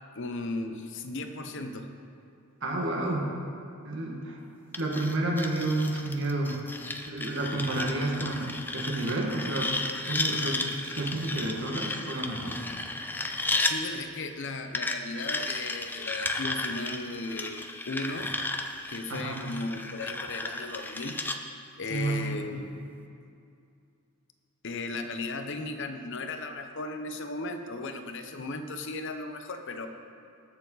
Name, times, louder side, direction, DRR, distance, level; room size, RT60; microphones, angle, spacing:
voice 1, 0.2-1.9 13.6-18.4 18.9-21.3 21.8-22.7 24.6-29.9, left 2 dB, 55° left, 7 dB, 0.8 m, -36 dB
voice 2, 2.6-3.3 3.8-4.4 4.8-6.6 7.1-9.7 10.1-10.6 10.9-12.6 19.1-19.4 21.9-22.5, right 2 dB, 55° right, 0 dB, 1.8 m, -30 dB
sound 1, 4.7-13.8 14.7-21.4, left 2 dB, 10° left, 0.5 m, -34 dB
20.0 x 7.0 x 4.0 m, 2.5 s
head